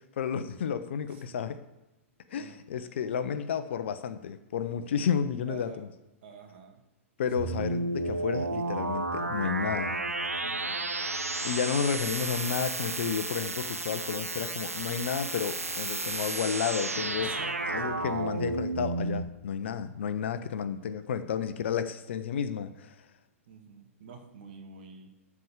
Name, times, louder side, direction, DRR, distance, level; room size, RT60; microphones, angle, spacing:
voice 1, 0.2-1.6 2.3-5.9 7.2-10.0 11.4-17.3 17.7-23.0, left 7 dB, 55° left, 11 dB, 0.9 m, -31 dB
voice 2, 2.3-2.9 4.9-5.1 5.5-5.8 6.2-6.8 10.4-10.9 11.5-11.6 17.2-18.0 23.5-25.1, right 5 dB, 50° right, 3 dB, 2.3 m, -48 dB
sound 1, 7.3-19.2, right 2 dB, 80° right, 1.1 m, -32 dB
13.5 x 4.9 x 7.3 m, 1.0 s
figure-of-eight pair, 105°, 8 cm